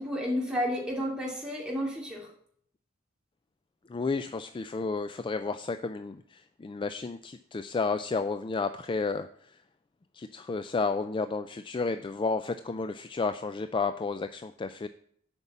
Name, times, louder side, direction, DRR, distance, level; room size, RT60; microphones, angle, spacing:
voice 1, 0.0-2.3, equal, 5° right, -2 dB, 2.5 m, -31 dB
voice 2, 3.9-9.6 10.1-14.9, left 4 dB, 25° left, 10 dB, 0.3 m, -32 dB
7.9 x 5.4 x 7.2 m, 0.63 s
head